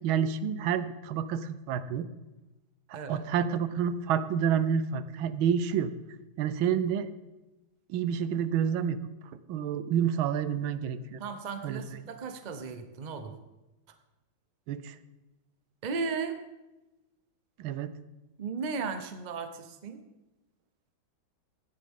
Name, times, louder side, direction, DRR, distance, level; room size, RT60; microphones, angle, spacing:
voice 1, 0.0-2.1 2.9-5.9 6.4-7.1 7.9-9.0 9.5-11.2 11.6-12.0 14.7-14.9 17.6-17.9, right 8 dB, 90° right, 13 dB, 1.5 m, -29 dB
voice 2, 2.9-3.2 11.2-13.3 15.8-16.4 18.4-20.0, right 4 dB, 35° right, 8 dB, 0.7 m, -35 dB
17.0 x 10.5 x 3.7 m, 1.0 s
omnidirectional pair, 2.2 m